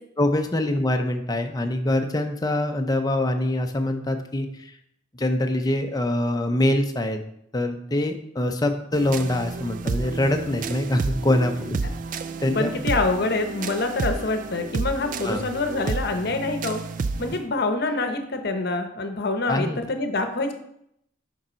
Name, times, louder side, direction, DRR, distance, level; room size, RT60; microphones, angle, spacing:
voice 1, 0.2-4.7 5.1-7.2 7.5-11.8 12.4-12.7 15.2-15.4 19.5-19.8, left 1 dB, 20° left, 5 dB, 0.6 m, -24 dB
sound 1, 8.9-17.4, right 4 dB, 40° right, 0.3 m, -31 dB
voice 2, 12.5-16.8 17.2-20.5, left 3 dB, 55° left, 6 dB, 0.8 m, -26 dB
6.5 x 5.4 x 4.4 m, 0.75 s
head